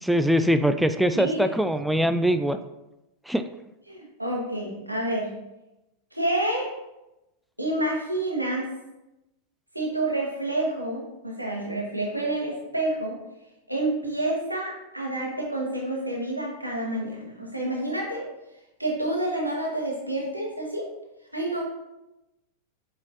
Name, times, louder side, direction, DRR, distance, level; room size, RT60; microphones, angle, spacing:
voice 1, 0.0-2.6 3.3-3.4, equal, ahead, 9 dB, 0.3 m, -22 dB
voice 2, 3.9-5.3 6.1-6.7 7.6-8.7 9.7-13.2 13.7-18.2 18.8-20.9 21.3-21.6, right 1 dB, 85° right, -2 dB, 1.5 m, -28 dB
7.2 x 4.8 x 2.9 m, 0.95 s
figure-of-eight pair, 90°, 0 cm